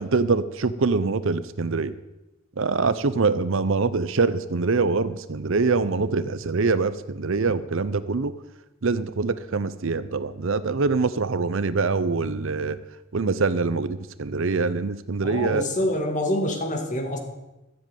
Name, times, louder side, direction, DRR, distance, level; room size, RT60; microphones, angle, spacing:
voice 1, 0.0-1.9 2.6-8.4 8.8-12.8 13.1-15.7, right 4 dB, 60° right, 14 dB, 0.6 m, -24 dB
voice 2, 15.2-17.2, left 1 dB, 35° left, 4 dB, 2.0 m, -26 dB
13.5 x 7.6 x 9.1 m, 0.99 s
head